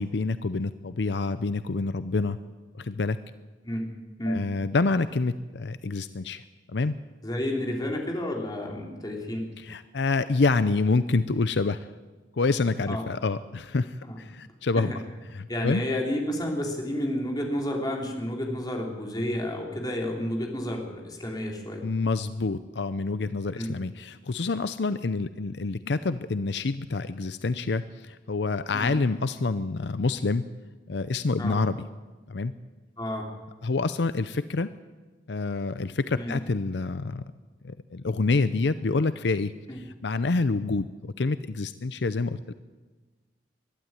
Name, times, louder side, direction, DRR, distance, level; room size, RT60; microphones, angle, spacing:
voice 1, 0.0-2.4 2.7-3.2 4.3-6.4 6.7-7.0 9.6-11.9 12.3-14.9 15.3-15.8 21.8-30.4 30.9-31.8 32.3-32.5 33.6-34.7 35.3-37.2 37.6-42.5, left 3 dB, 70° left, 13 dB, 0.6 m, -27 dB
voice 2, 7.2-9.5 12.8-13.0 14.0-14.2 14.7-15.0 15.5-21.8 23.5-23.7 28.7-28.9 31.4-31.6 33.0-33.3 36.1-36.3 39.7-39.8, left 1 dB, 20° left, 1 dB, 3.4 m, -30 dB
22.0 x 12.0 x 9.7 m, 1.3 s
head